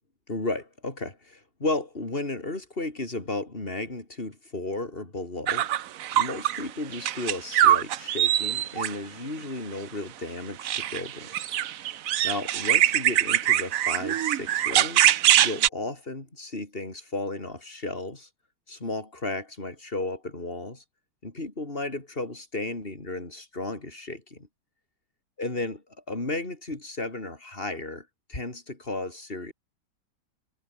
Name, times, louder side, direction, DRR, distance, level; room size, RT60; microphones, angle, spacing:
voice 1, 0.3-5.7 6.1-11.5 12.2-15.1 15.4-18.3 18.7-20.8 21.2-24.5 25.4-29.5, left 2 dB, 30° left, 4.6 m, -34 dB
sound 1, 5.5-6.6 6.9-8.9 10.6-15.7, right 11 dB, 60° right, 1.0 m, -23 dB
omnidirectional pair, 1.9 m